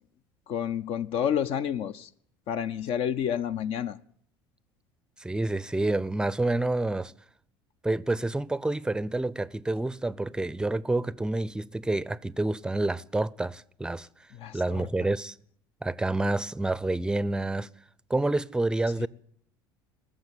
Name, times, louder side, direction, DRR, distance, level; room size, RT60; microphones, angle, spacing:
voice 1, 0.5-2.1 2.5-4.0 14.3-15.1 19.0-19.1, left 9 dB, 55° left, 0.6 m, -30 dB
voice 2, 5.2-7.1 7.8-14.1 14.5-15.3 15.8-17.7 18.1-19.1, right 2 dB, 5° right, 0.5 m, -28 dB
19.5 x 7.2 x 9.0 m
hypercardioid pair, 70°, 12 cm